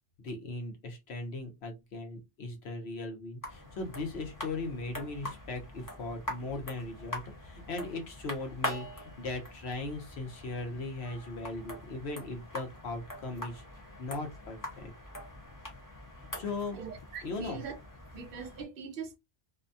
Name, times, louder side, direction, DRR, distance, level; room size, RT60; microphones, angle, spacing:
voice 1, 0.2-13.6 14.0-14.9 16.3-16.8 17.2-17.6, left 2 dB, 70° left, 1.1 m, -38 dB
sound 1, 3.4-18.6, left 1 dB, 20° left, 0.9 m, -43 dB
voice 2, 16.7-17.8 18.1-19.2, right 6 dB, 60° right, 0.7 m, -42 dB
2.7 x 2.2 x 2.6 m
omnidirectional pair, 1.2 m